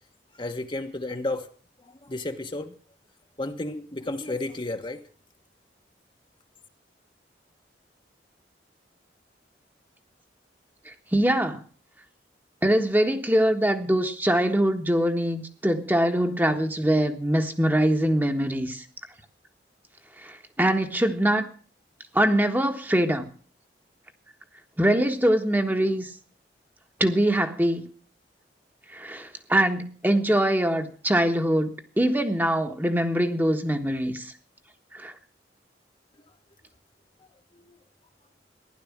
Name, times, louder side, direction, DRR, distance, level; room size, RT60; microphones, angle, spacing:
voice 1, 0.4-1.5 2.0-2.7 3.4-5.0 37.5-37.8, left 2 dB, 30° left, 5 dB, 1.3 m, -32 dB
voice 2, 10.9-11.6 12.6-18.8 20.2-21.5 22.1-23.2 24.8-26.1 27.0-27.8 28.9-34.3 34.9-35.1, right 1 dB, 10° right, 5 dB, 1.4 m, -23 dB
15.5 x 11.5 x 7.3 m, 0.43 s
head